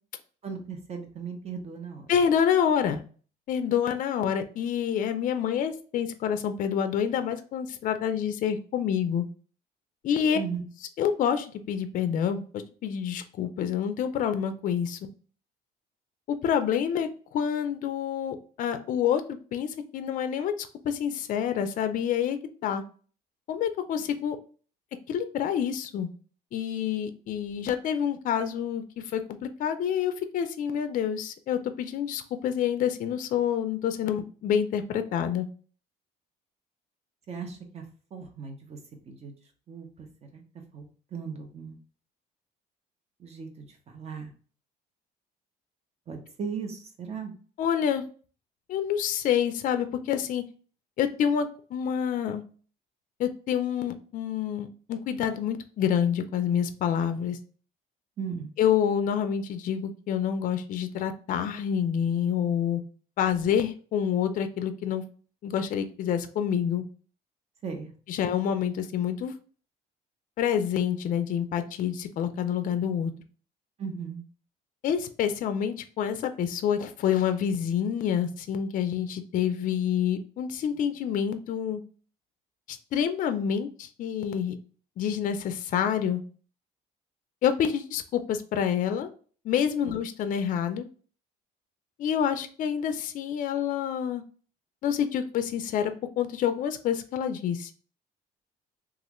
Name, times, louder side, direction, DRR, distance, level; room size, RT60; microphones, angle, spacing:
voice 1, 0.4-2.1 10.3-10.6 37.3-37.8 38.1-38.8 39.1-39.3 39.7-40.1 40.3-40.4 40.7-40.9 41.1-41.8 43.2-44.3 46.1-47.3 58.2-58.5 67.6-67.9 73.8-74.2 89.8-89.9, right 6 dB, 40° right, 5 dB, 0.8 m, -37 dB
voice 2, 2.1-3.0 3.5-9.2 10.0-10.4 11.0-15.0 16.3-22.8 23.5-24.4 25.1-26.1 26.5-35.5 47.6-48.0 48.7-50.4 51.0-52.4 53.2-57.4 58.6-62.8 63.2-65.0 65.4-66.8 68.1-69.3 70.4-73.1 74.8-81.8 82.7-84.6 85.0-86.2 87.4-89.1 89.4-90.9 92.0-94.2 94.8-97.7, left 8 dB, 50° left, 9 dB, 0.4 m, -27 dB
3.1 x 2.4 x 2.9 m, 0.41 s
cardioid pair, 110°, 17 cm